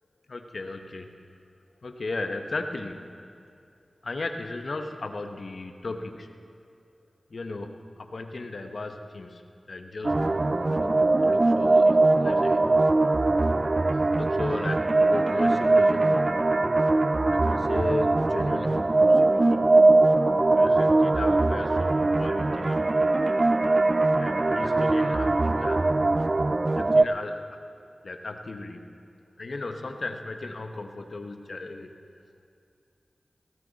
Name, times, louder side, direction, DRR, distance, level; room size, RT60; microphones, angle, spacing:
voice 1, 0.3-1.1 1.8-3.1 4.0-6.3 7.3-9.4 9.7-12.6 13.9-16.4 17.3-19.6 20.5-23.1 24.1-25.9 26.8-27.4 28.0-29.0 29.4-31.9, left 2 dB, 70° left, 6 dB, 1.1 m, -36 dB
sound 1, 10.0-27.0, right 2 dB, 45° right, 0.4 m, -21 dB
17.5 x 17.0 x 4.1 m, 2.4 s
cardioid pair, 40°, 0 cm